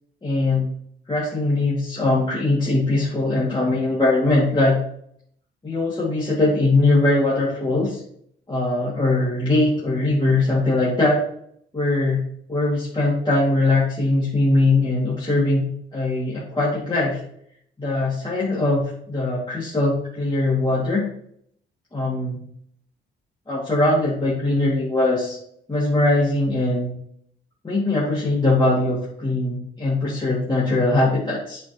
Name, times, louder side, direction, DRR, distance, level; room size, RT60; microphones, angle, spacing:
voice 1, 0.2-0.7 1.1-4.8 5.6-8.0 8.5-11.2 11.7-12.2 12.5-17.2 17.8-21.1 21.9-22.4 23.5-25.4 25.7-26.9 27.6-31.6, left 2 dB, 25° left, -7 dB, 2.4 m, -21 dB
8.0 x 4.9 x 3.1 m, 0.65 s
cardioid pair, 90°, 20 cm